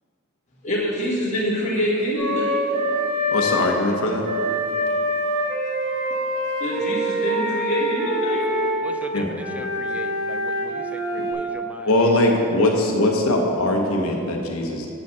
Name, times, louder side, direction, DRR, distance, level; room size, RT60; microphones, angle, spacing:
voice 1, 0.6-2.6 6.6-8.5, equal, 35° left, -6 dB, 1.5 m, -25 dB
Wind instrument woodwind instrument, 2.2-3.6 4.2-8.8 9.4-11.3, equal, 50° right, 2.2 m, -25 dB
voice 2, 3.3-4.2 9.1-9.3 11.9-14.9, left 1 dB, 80° left, 1 dB, 1.1 m, -21 dB
voice 3, 8.8-12.1, equal, 5° right, 7 dB, 0.3 m, -39 dB
7.6 x 5.3 x 7.0 m, 2.8 s
head